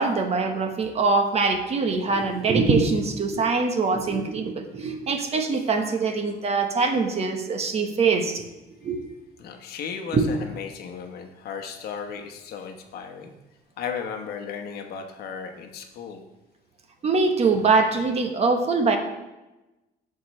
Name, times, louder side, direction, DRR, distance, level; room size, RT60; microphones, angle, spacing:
voice 1, 0.0-8.4 8.8-9.0 10.1-10.3 17.0-19.0, right 4 dB, 40° right, 5 dB, 1.1 m, -23 dB
voice 2, 9.4-13.3 13.8-16.2, left 6 dB, 70° left, 4 dB, 1.1 m, -35 dB
14.0 x 4.8 x 3.2 m, 1.0 s
cardioid pair, 110°, 17 cm